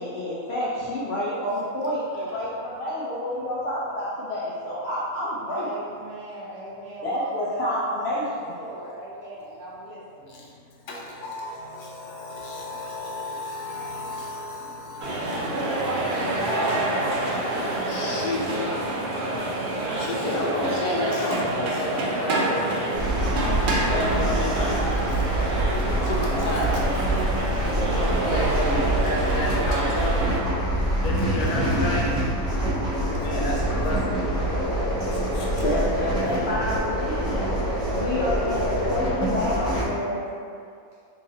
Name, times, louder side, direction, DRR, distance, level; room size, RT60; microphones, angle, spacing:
voice 1, 0.0-5.7 7.0-8.3 35.6-40.3, left 1 dB, 70° left, -7 dB, 0.6 m, -29 dB
voice 2, 5.5-8.2 8.5-10.4, right 2 dB, 60° right, -5 dB, 0.9 m, -38 dB
voice 3, 10.9-18.5 19.3-19.4 19.9-22.8 23.9-25.2 25.7-30.3 31.0-32.2 33.1-34.4 35.3-35.5, left 1 dB, 90° left, -3 dB, 1.2 m, -32 dB
sound 1, 15.0-30.4, right 1 dB, 90° right, 0.4 m, -27 dB
sound 2, 22.9-39.8, right 1 dB, 30° right, 1.0 m, -25 dB
2.9 x 2.7 x 3.8 m, 2.3 s
omnidirectional pair, 1.6 m